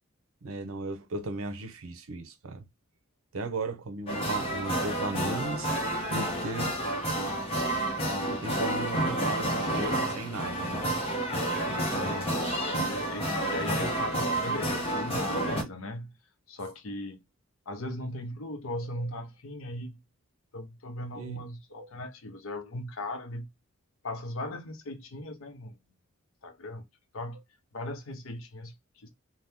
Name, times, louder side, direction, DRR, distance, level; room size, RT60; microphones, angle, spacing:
voice 1, 0.4-2.6 3.3-5.7 6.1-6.7 8.3-10.8 18.9-19.0 21.1-21.4 21.7-21.9, right 2 dB, 80° right, 0.6 m, -36 dB
sound 1, 4.1-15.6, right 1 dB, 25° left, 0.8 m, -30 dB
voice 2, 11.9-16.2 16.5-17.2 17.7-20.0 20.5-23.5 24.0-25.8 26.4-26.8 27.1-27.4 27.7-29.1, left 1 dB, 70° left, 0.7 m, -38 dB
2.8 x 2.2 x 3.4 m
head